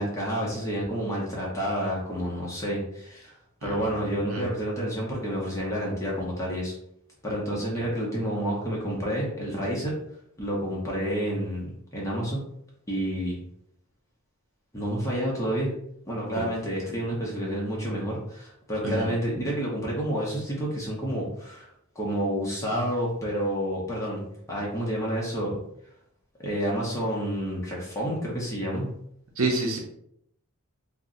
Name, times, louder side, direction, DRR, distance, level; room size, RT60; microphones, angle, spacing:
voice 1, 0.0-3.3 3.6-6.7 7.2-9.9 10.4-12.4 12.9-13.4 14.7-15.7 16.1-21.7 21.9-25.6 26.4-28.9, equal, 15° left, -4 dB, 0.6 m, -29 dB
voice 2, 3.6-4.4 16.4-16.5 18.8-19.1 29.4-29.8, right 2 dB, 70° right, 0 dB, 0.6 m, -29 dB
2.5 x 2.0 x 3.7 m, 0.74 s
head